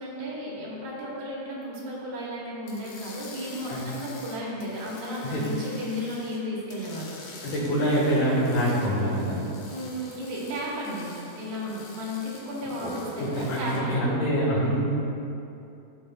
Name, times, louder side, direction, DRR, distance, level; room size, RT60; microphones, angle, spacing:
voice 1, 0.0-7.2 9.7-11.1 11.4-14.0, equal, 80° right, -5 dB, 3.6 m, -34 dB
sound 1, 2.7-6.4 6.7-13.8, left 3 dB, 80° left, 3.2 m, -47 dB
voice 2, 7.4-9.4 12.8-14.8, equal, 65° left, -9 dB, 2.9 m, -25 dB
14.5 x 7.1 x 2.4 m, 2.7 s
omnidirectional pair, 4.2 m